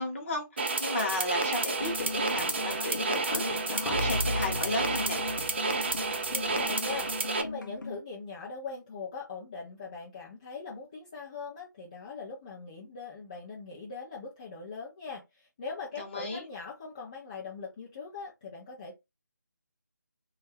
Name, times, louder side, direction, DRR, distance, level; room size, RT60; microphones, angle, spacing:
voice 1, 0.0-5.2 16.0-16.5, left 2 dB, 40° left, 1.0 m, -34 dB
sound 1, 0.6-7.4, right 3 dB, 35° right, 0.4 m, -30 dB
sound 2, 1.8-8.0, left 2 dB, 75° left, 0.5 m, -37 dB
voice 2, 6.1-7.1 7.4-19.0, left 4 dB, 20° left, 0.5 m, -41 dB
2.3 x 2.0 x 3.4 m
figure-of-eight pair, 160°, 10 cm